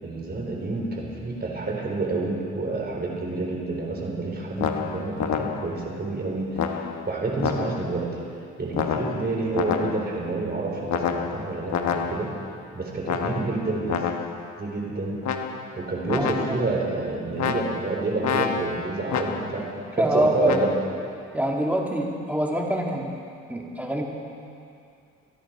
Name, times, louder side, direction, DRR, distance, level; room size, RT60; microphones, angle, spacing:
voice 1, 0.0-8.1 8.6-12.3 12.7-14.1 14.6-15.2 15.7-19.6 20.0-20.7, right 3 dB, 35° right, -1 dB, 3.9 m, -28 dB
sound 1, 4.6-5.9 6.6-8.0 8.7-10.2 10.9-12.5 13.0-14.5 15.2-15.8 16.1-16.8 17.4-19.7 20.4-20.8, left 7 dB, 65° left, 1.1 m, -29 dB
voice 2, 16.2-16.6 19.6-19.7 20.0-20.6 21.3-23.1 23.5-24.0, equal, 5° right, -1 dB, 2.4 m, -25 dB
26.5 x 10.0 x 4.6 m, 2.5 s
cardioid pair, 90°, 30 cm